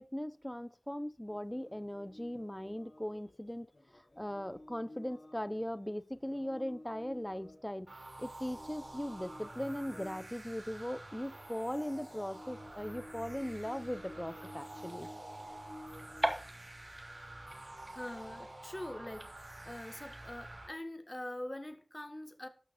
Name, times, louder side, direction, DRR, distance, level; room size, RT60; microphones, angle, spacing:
voice 1, 0.0-3.7 3.9-15.1, equal, 15° left, 0.7 m, -39 dB
sound 1, 1.3-5.8 6.1-16.5, left 1 dB, 75° left, 4.2 m, -54 dB
sound 2, 7.9-20.7, right 2 dB, 65° right, 5.6 m, -49 dB
sound 3, 13.4-20.6, right 1 dB, 30° right, 1.9 m, -44 dB
voice 2, 17.1-22.5, left 1 dB, 30° left, 1.6 m, -44 dB
12.5 x 5.9 x 5.1 m
wide cardioid pair, 50°, 0 cm